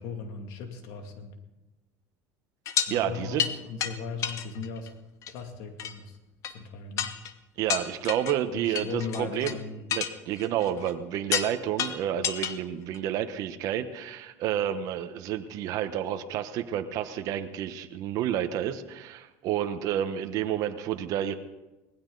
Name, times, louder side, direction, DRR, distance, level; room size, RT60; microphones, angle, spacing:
voice 1, 0.0-1.3 2.9-5.0 5.3-6.2 6.5-7.1 8.5-9.9, left 5 dB, 70° left, 5 dB, 2.5 m, -38 dB
sound 1, 2.7-2.9 3.4-3.5 3.8-3.9 4.2-4.9 5.2-5.4 5.8-5.9 6.4-6.5 7.0-7.3 7.7-8.3 8.7-9.6 9.9-10.9 11.3-11.5 11.8-12.5 12.9-13.0, left 8 dB, 50° left, 1.0 m, -30 dB
voice 2, 2.9-3.5 7.6-9.5 9.9-21.3, right 10 dB, 55° right, 8 dB, 1.0 m, -30 dB
19.5 x 15.5 x 4.0 m, 1.0 s
supercardioid pair, 120°, 7 cm